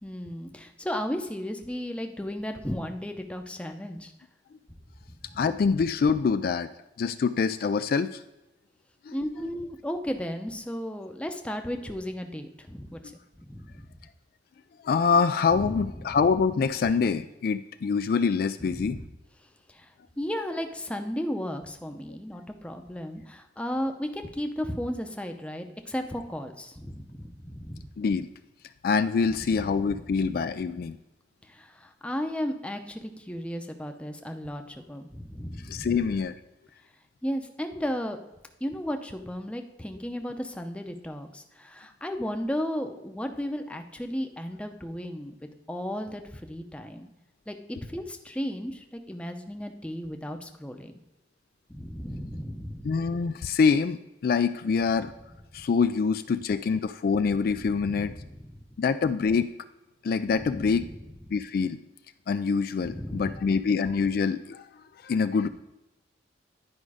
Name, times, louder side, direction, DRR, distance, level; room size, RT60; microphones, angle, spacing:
voice 1, 0.0-4.1 9.1-13.0 13.4-13.9 15.5-16.1 18.7-19.0 19.7-19.9 20.2-27.8 29.8-29.9 30.2-30.5 31.5-36.0 37.2-38.2 38.6-45.3 45.7-47.1 47.5-47.6 47.9-50.9 51.7-52.9 57.6-58.6 60.4-60.8 62.8-63.5, equal, 5° left, 5 dB, 0.7 m, -34 dB
voice 2, 5.4-6.7 7.0-8.2 9.1-9.2 9.4-9.5 13.0-13.1 14.8-19.0 28.0-28.3 28.8-31.0 35.6-36.3 52.8-55.1 55.5-58.1 58.8-59.5 60.0-60.9 61.3-61.8 62.3-64.7 65.0-65.5, left 5 dB, 55° left, 11 dB, 0.3 m, -25 dB
10.5 x 5.2 x 4.9 m, 0.98 s
head